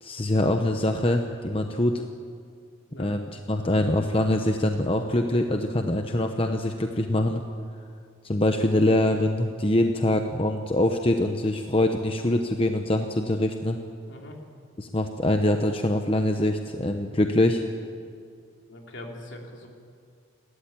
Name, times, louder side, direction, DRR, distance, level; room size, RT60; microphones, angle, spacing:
voice 1, 0.0-2.0 3.0-7.4 8.2-13.8 14.8-17.6, left 1 dB, 30° left, 5 dB, 0.9 m, -24 dB
voice 2, 14.0-14.4 18.7-19.7, left 1 dB, 65° left, 1 dB, 3.5 m, -42 dB
30.0 x 13.0 x 9.0 m, 2.3 s
head